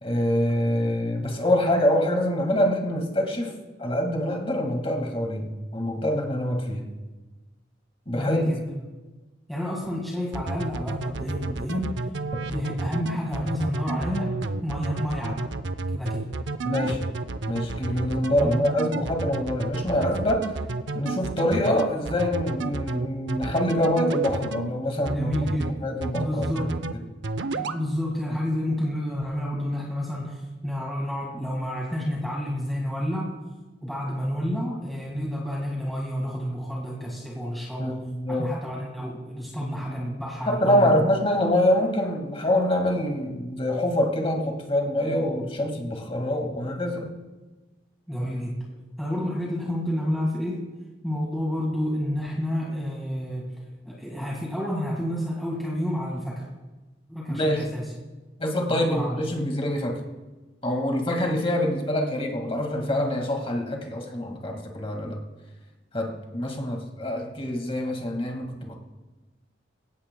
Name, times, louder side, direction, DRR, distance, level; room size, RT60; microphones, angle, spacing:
voice 1, 0.0-3.5 3.8-6.9 8.1-8.4 16.6-17.1 17.5-20.6 20.9-25.3 25.8-26.7 37.8-38.5 40.5-47.1 57.3-57.7 58.4-60.0 60.6-65.2 65.9-68.8, left 1 dB, 30° left, 2 dB, 1.9 m, -25 dB
voice 2, 8.1-8.6 9.5-12.0 12.5-15.5 15.9-16.3 18.4-18.6 25.1-26.9 27.5-33.4 33.8-41.0 48.1-50.7 51.0-56.5 57.1-57.9 58.6-59.2, equal, ahead, -4 dB, 1.9 m, -30 dB
sound 1, 10.3-24.7 25.1-25.7 26.0-26.9 27.2-27.8, right 3 dB, 70° right, 0.6 m, -30 dB
20.5 x 17.0 x 2.3 m, 1.2 s
head